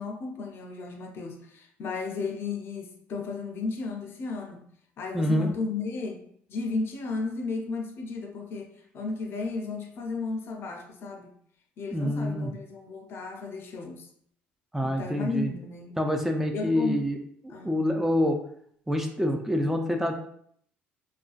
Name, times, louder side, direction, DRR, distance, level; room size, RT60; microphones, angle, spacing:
voice 1, 0.0-4.6 5.0-6.2 6.5-11.3 11.8-14.1 14.8-16.0 16.5-17.1 17.5-17.8, left 3 dB, 50° left, 4 dB, 0.5 m, -34 dB
voice 2, 5.1-5.6 11.9-12.5 14.7-15.5 16.0-17.2 17.6-18.4 18.9-20.1, left 1 dB, 5° right, 3 dB, 0.3 m, -26 dB
2.4 x 2.1 x 2.4 m, 0.64 s
supercardioid pair, 75°, 5 cm